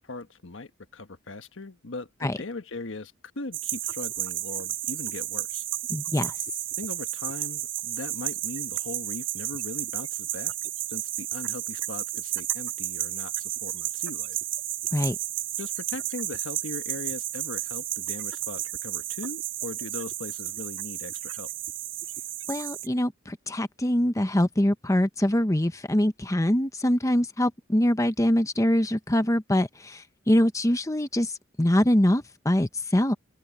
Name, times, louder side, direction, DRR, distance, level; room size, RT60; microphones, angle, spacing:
voice 1, 0.0-5.6 6.8-10.5 10.9-14.4 15.6-21.5, left 2 dB, 85° left, 1.4 m, -39 dB
sound 1, 3.5-22.9, right 13 dB, 90° right, 2.4 m, -32 dB
voice 2, 5.9-6.3 14.9-15.2 22.5-31.3 31.6-33.1, left 1 dB, 15° left, 1.0 m, -24 dB
open air
head